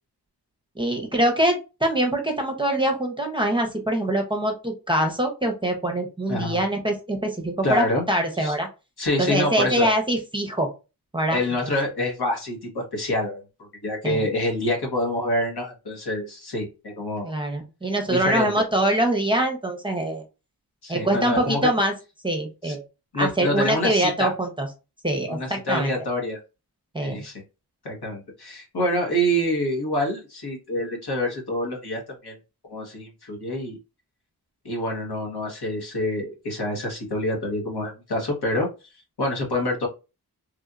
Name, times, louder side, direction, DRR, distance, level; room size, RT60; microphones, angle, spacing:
voice 1, 0.8-8.7 9.2-10.7 11.1-11.4 14.0-14.2 17.2-20.2 20.9-21.9 22.2-22.8 23.2-24.7 25.0-25.9 26.9-27.2, right 1 dB, 10° right, 2 dB, 0.8 m, -24 dB
voice 2, 6.3-6.6 7.6-8.1 8.4-8.5 9.0-9.9 11.3-17.3 18.1-18.5 20.8-21.7 22.6-22.8 23.1-24.3 25.3-26.4 27.0-27.4 27.8-32.3 32.7-33.8 34.6-38.7 39.2-39.9, left 1 dB, 70° left, 0 dB, 1.4 m, -26 dB
3.2 x 2.7 x 2.4 m, 0.29 s
wide cardioid pair, 80°, 40 cm